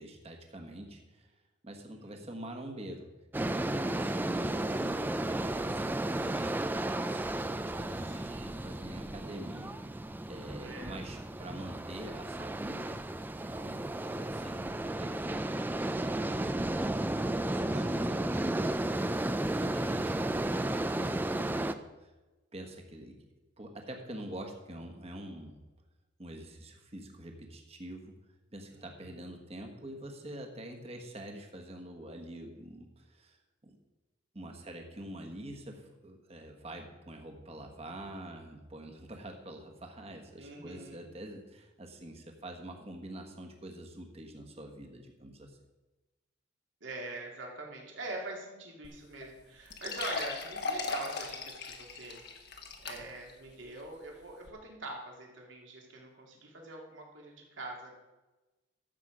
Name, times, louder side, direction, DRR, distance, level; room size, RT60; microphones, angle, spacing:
voice 1, 0.0-1.3 1.6-3.1 3.4-10.0 10.3-13.0 13.4-16.5 17.0-22.1 22.5-23.2 23.6-25.6 26.2-28.2 28.5-33.4 33.6-33.8 34.3-45.6, right 1 dB, 30° right, 3 dB, 1.4 m, -46 dB
voice 2, 1.9-2.3 8.0-8.6 10.4-11.0 28.7-29.2 40.4-41.1 46.8-52.2 52.8-57.9, right 2 dB, 75° right, 0 dB, 2.4 m, -44 dB
sound 1, 3.3-21.7, right 1 dB, 10° right, 0.3 m, -33 dB
sound 2, 48.8-48.9 49.2-49.3 49.7-53.3 53.8-53.9 54.5-54.6, left 3 dB, 55° left, 1.4 m, -38 dB
13.0 x 7.5 x 5.0 m, 1.1 s
head